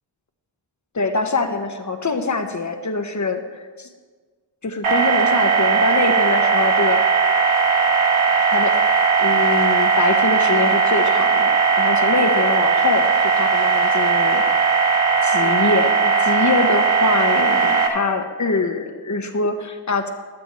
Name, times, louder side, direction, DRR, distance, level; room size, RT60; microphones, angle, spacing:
voice 1, 0.9-3.9 4.6-7.2 8.5-8.8 9.2-14.4 15.2-20.1, left 3 dB, 35° left, 6 dB, 1.4 m, -24 dB
sound 1, 4.8-17.9, right 5 dB, 85° right, 1.3 m, -18 dB
15.0 x 12.0 x 3.2 m, 1.5 s
cardioid pair, 55°, 47 cm